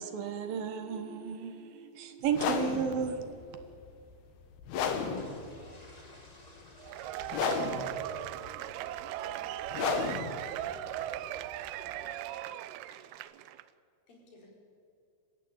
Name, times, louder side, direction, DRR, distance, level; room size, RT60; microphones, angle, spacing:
voice 1, 0.0-3.7, right 6 dB, 70° right, 2.9 m, -34 dB
sound 1, 2.3-12.1, left 6 dB, 80° left, 3.5 m, -35 dB
sound 2, 4.6-9.2, left 1 dB, 15° left, 1.3 m, -51 dB
voice 2, 5.0-6.1 6.4-7.2 8.0-8.9 9.2-9.7, left 2 dB, 35° left, 1.0 m, -61 dB
Cheering / Applause / Crowd, 6.8-13.6, right 13 dB, 85° right, 2.7 m, -38 dB
voice 3, 10.3-11.5 11.7-11.9 12.2-12.3 14.1-14.6, left 1 dB, 60° left, 6.5 m, -57 dB
27.5 x 15.5 x 8.8 m
omnidirectional pair, 4.4 m